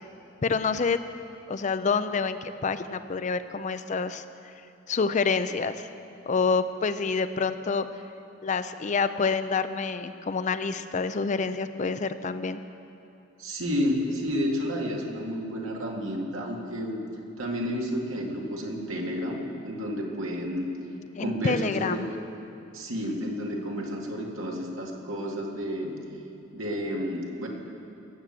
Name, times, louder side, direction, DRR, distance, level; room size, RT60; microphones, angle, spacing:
voice 1, 0.4-1.0 1.5-4.2 4.9-5.9 6.3-7.9 8.4-12.6 21.1-22.1, left 4 dB, 35° left, 11 dB, 0.4 m, -27 dB
voice 2, 13.4-17.0 17.4-20.7 21.2-22.0 22.7-26.0 26.5-27.5, equal, 85° right, -1 dB, 2.0 m, -31 dB
17.0 x 7.4 x 7.5 m, 2.9 s
head